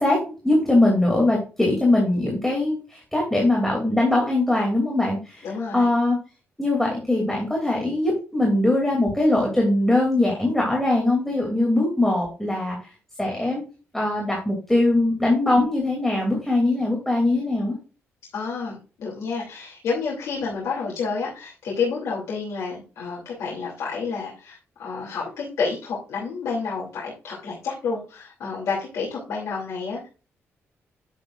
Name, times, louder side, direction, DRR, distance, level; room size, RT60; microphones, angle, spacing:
voice 1, 0.0-6.2 6.6-12.9 13.2-13.6 13.9-17.8, left 2 dB, 5° left, -1 dB, 2.7 m, -21 dB
voice 2, 5.4-5.9 18.3-30.1, left 5 dB, 85° left, -4 dB, 2.8 m, -29 dB
10.5 x 7.7 x 2.5 m, 0.35 s
cardioid pair, 120°, 5 cm